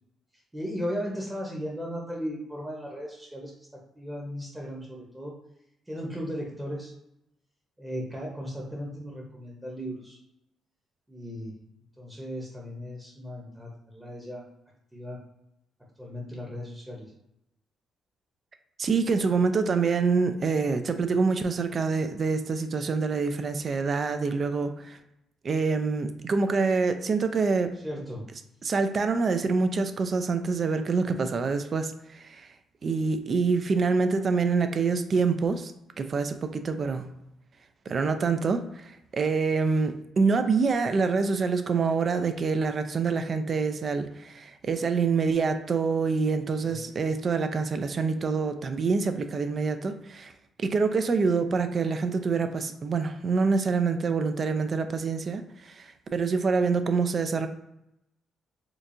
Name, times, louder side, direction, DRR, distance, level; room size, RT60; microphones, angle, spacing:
voice 1, 0.5-5.3 5.9-6.9 7.8-10.2 11.1-11.5 12.0-14.4 14.9-15.2 16.0-17.1 27.8-28.2 46.6-46.8, equal, 10° right, -2 dB, 0.9 m, -36 dB
voice 2, 18.8-25.0 25.4-27.8 28.6-32.5 32.8-35.7 36.0-37.1 37.9-50.3 50.6-57.5, right 4 dB, 45° right, 8 dB, 0.4 m, -26 dB
4.5 x 2.4 x 2.6 m, 0.84 s
cardioid pair, 90°, 0 cm